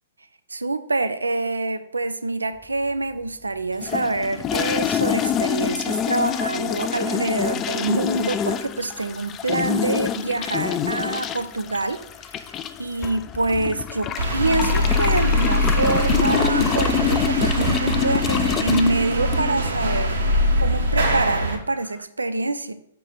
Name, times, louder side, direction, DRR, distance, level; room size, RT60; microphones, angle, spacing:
voice 1, 0.5-20.2 20.6-22.7, right 2 dB, 75° right, 11 dB, 0.5 m, -26 dB
sound 1, 3.8-19.7, left 9 dB, 20° left, 0.3 m, -26 dB
sound 2, 14.2-21.6, equal, 60° right, 1.3 m, -22 dB
5.9 x 4.4 x 4.3 m, 0.70 s
figure-of-eight pair, 115°, 0 cm